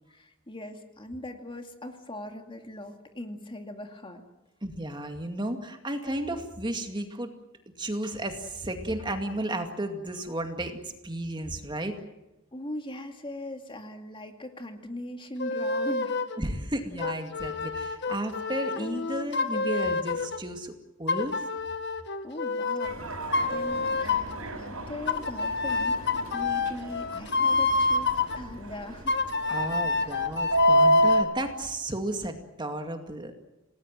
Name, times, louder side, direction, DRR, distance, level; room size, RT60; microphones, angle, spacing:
voice 1, 0.1-4.2 12.5-16.2 22.2-29.2 29.9-30.2, left 1 dB, 25° left, 5 dB, 2.3 m, -40 dB
voice 2, 4.6-7.3 7.8-10.8 11.0-11.9 16.4-20.7 21.0-21.5 29.5-33.3, right 1 dB, 20° right, 5 dB, 2.2 m, -33 dB
sound 1, 15.4-16.4 17.0-20.4 21.1-22.9 23.3-24.4 25.1-28.4 29.1-31.3, left 4 dB, 55° left, 1.7 m, -28 dB
Subway metro underground, 22.8-31.2, right 1 dB, 75° right, 5.6 m, -29 dB
28.5 x 19.5 x 7.5 m, 0.99 s
head